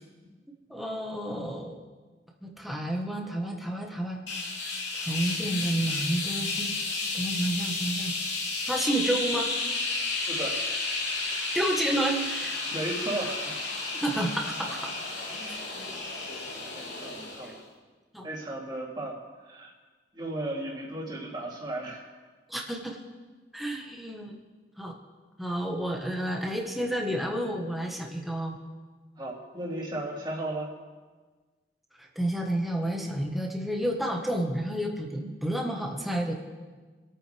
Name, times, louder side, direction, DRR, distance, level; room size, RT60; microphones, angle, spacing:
voice 1, 0.7-1.8 2.4-4.2 4.9-6.7 7.1-8.1 8.6-9.5 11.5-12.5 13.9-14.9 15.5-15.6 18.1-18.3 22.5-23.0 23.5-24.4 24.8-24.9 25.4-28.6 32.0-36.3, right 1 dB, ahead, -1 dB, 1.4 m, -30 dB
sound 1, 4.3-17.6, left 3 dB, 90° left, 3.0 m, -32 dB
voice 2, 10.3-10.8 11.2-11.4 12.7-13.6 15.3-15.9 16.7-17.6 18.2-19.2 19.4-19.7 20.1-22.0 29.2-30.7, right 1 dB, 25° right, -5 dB, 3.2 m, -35 dB
26.5 x 9.2 x 3.5 m, 1.4 s
head